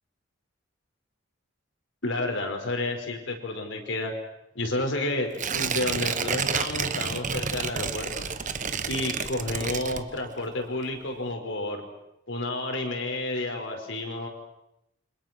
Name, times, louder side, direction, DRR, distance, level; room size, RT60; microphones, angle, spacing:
voice 1, 2.0-4.1 4.6-8.3 8.9-11.8 12.3-14.3, left 2 dB, 60° left, 4 dB, 5.3 m, -30 dB
Tearing, 5.3-10.5 10.8-10.9, right 6 dB, 40° right, 1.3 m, -30 dB
29.5 x 26.5 x 6.2 m, 0.86 s
head